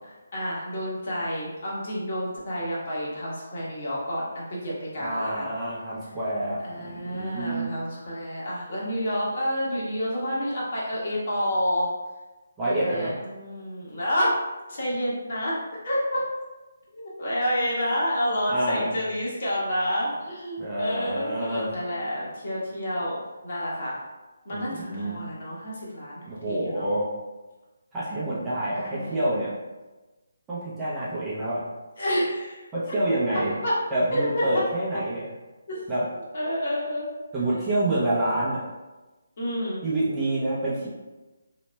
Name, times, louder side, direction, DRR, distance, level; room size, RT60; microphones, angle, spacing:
voice 1, 0.0-5.5 6.6-11.9 12.6-14.3 14.7-15.6 15.8-16.2 16.9-23.2 23.4-24.0 24.4-26.9 28.7-29.2 32.0-33.8 34.1-34.6 35.7-35.8 36.3-37.1 37.5-37.6 37.9-38.0 39.4-39.8, equal, 45° left, -6 dB, 1.2 m, -29 dB
voice 2, 5.0-7.7 12.6-13.1 18.5-18.9 20.6-21.7 24.5-25.2 26.3-27.1 27.9-29.5 30.5-31.6 32.7-33.5 33.9-35.3 35.9-36.0 37.3-38.6 39.8-40.9, right 1 dB, 10° right, -10 dB, 0.8 m, -27 dB
4.0 x 3.0 x 2.2 m, 1.1 s
figure-of-eight pair, 145°, 0 cm